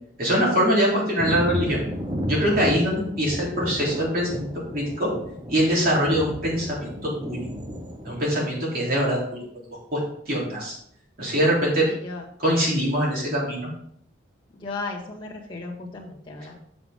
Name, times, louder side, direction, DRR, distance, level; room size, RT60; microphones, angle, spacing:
voice 1, 0.2-1.8 2.3-4.5 4.7-5.1 5.5-7.4 8.0-9.2 9.7-10.0 10.3-10.7 11.2-11.9 12.4-13.7, equal, 50° right, -4 dB, 3.5 m, -23 dB
Thunder, 1.2-8.2, equal, 25° right, 0.9 m, -32 dB
voice 2, 11.8-12.2 14.5-16.6, left 3 dB, 25° left, -4 dB, 2.1 m, -35 dB
8.0 x 7.2 x 3.7 m, 0.66 s
head